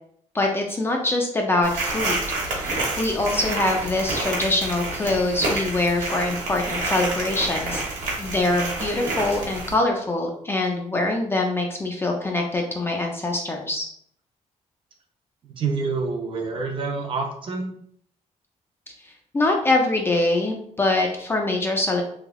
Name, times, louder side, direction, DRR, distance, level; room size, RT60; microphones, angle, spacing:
voice 1, 0.3-7.8 8.2-13.9 19.0-22.0, left 2 dB, 20° left, 1 dB, 0.3 m, -24 dB
sound 1, 1.6-9.7, right 2 dB, 85° right, 1.0 m, -28 dB
voice 2, 15.4-17.7, right 4 dB, 40° right, 1 dB, 0.5 m, -27 dB
3.2 x 2.3 x 2.2 m, 0.64 s
wide cardioid pair, 170°, 13 cm